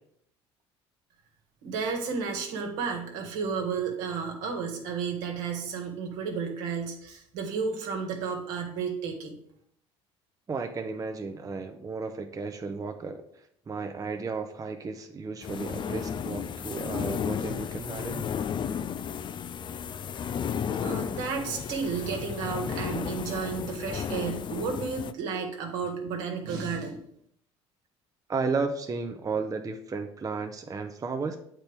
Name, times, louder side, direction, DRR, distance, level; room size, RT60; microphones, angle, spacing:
voice 1, 1.6-9.4 20.8-27.0, right 5 dB, 75° right, 2 dB, 1.5 m, -32 dB
voice 2, 10.5-13.2 13.7-18.2 28.3-31.4, right 4 dB, 25° right, 5 dB, 0.7 m, -33 dB
sound 1, 15.4-25.1, left 8 dB, 35° left, 0.4 m, -33 dB
7.8 x 4.4 x 3.5 m, 0.70 s
hypercardioid pair, 70°, 13 cm